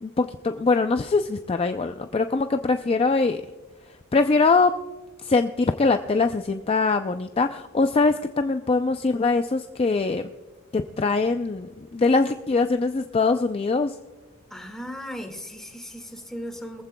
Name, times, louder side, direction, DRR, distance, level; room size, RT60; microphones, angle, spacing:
voice 1, 0.0-3.4 4.1-4.7 5.2-10.3 10.7-14.0, left 3 dB, 25° left, 7 dB, 0.4 m, -22 dB
voice 2, 14.5-16.8, equal, ahead, 3 dB, 1.9 m, -37 dB
23.0 x 15.0 x 2.2 m, 1.3 s
head